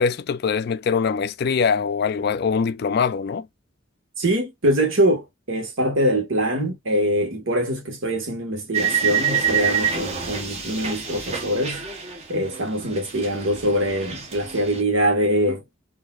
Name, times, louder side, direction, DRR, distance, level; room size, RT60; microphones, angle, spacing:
voice 1, 0.0-3.5, left 6 dB, 55° left, 0.3 m, -23 dB
voice 2, 4.2-11.8 12.3-15.6, equal, 75° right, 1.5 m, -23 dB
sound 1, 8.7-12.7 12.9-14.8, right 7 dB, 30° right, 0.9 m, -26 dB
4.0 x 2.7 x 2.3 m
head